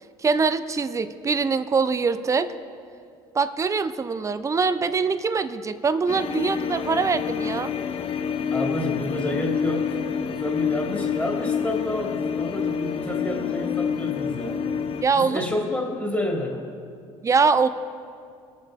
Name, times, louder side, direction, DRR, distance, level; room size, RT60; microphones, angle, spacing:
voice 1, 0.2-2.5 3.3-7.7 15.0-15.4 17.2-17.7, right 5 dB, 25° right, 12 dB, 0.6 m, -23 dB
sound 1, 6.1-15.0, left 7 dB, 50° left, 0.8 m, -28 dB
voice 2, 8.5-10.0 10.4-14.7 15.1-16.6, left 1 dB, 15° left, -1 dB, 2.5 m, -29 dB
22.0 x 7.4 x 3.6 m, 2.4 s
supercardioid pair, 75°, 13 cm